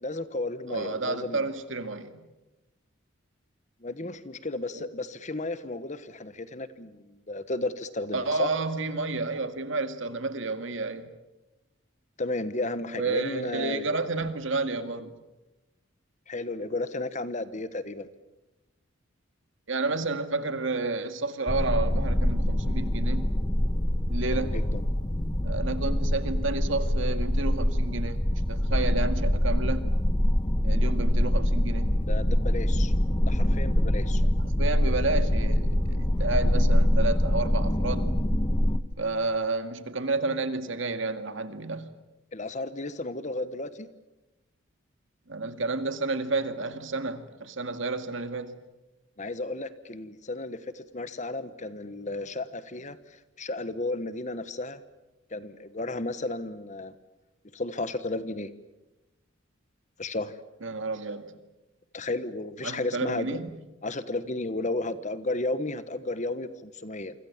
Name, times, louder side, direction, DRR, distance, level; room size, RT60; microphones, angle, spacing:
voice 1, 0.0-1.5 3.8-8.5 12.2-13.8 16.3-18.1 24.3-24.8 32.0-32.9 33.3-34.2 42.3-43.9 49.2-54.8 55.3-56.9 57.5-58.5 60.0-60.4 61.9-63.4 63.8-67.1, left 2 dB, 35° left, 13 dB, 1.3 m, -33 dB
voice 2, 0.7-2.3 4.7-4.9 8.1-11.1 12.9-15.1 19.7-23.3 24.1-24.6 25.4-29.9 30.6-31.9 34.4-38.2 39.0-41.9 45.3-48.6 60.6-61.4 62.6-63.5, right 3 dB, 65° right, 9 dB, 2.1 m, -31 dB
sound 1, 21.5-38.8, equal, 20° left, 1.1 m, -24 dB
28.5 x 25.0 x 7.4 m, 1.0 s
head